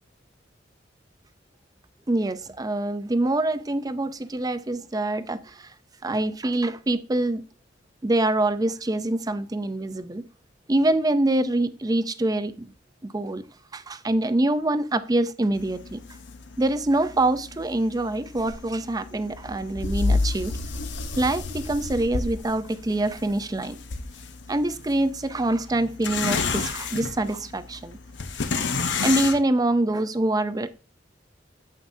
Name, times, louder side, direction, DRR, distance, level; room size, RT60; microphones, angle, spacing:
voice 1, 2.1-5.7 6.0-7.4 8.0-10.3 10.7-12.7 13.1-13.4 13.7-16.0 16.6-20.5 21.2-23.8 24.5-28.0 28.9-30.7, right 2 dB, 20° right, 0.5 m, -25 dB
sound 1, 15.6-29.4, left 4 dB, 65° left, 0.8 m, -31 dB
8.8 x 7.5 x 2.7 m
head